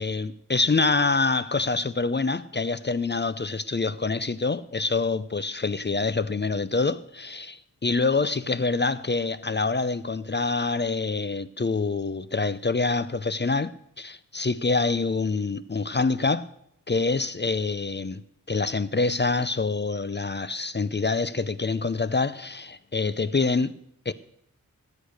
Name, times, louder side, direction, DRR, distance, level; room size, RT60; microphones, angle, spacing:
voice 1, 0.0-16.5 16.9-18.2 18.5-23.8 24.1-24.2, left 3 dB, 30° left, 0.6 m, -26 dB
18.5 x 8.6 x 6.4 m
wide cardioid pair, 95°, 35 cm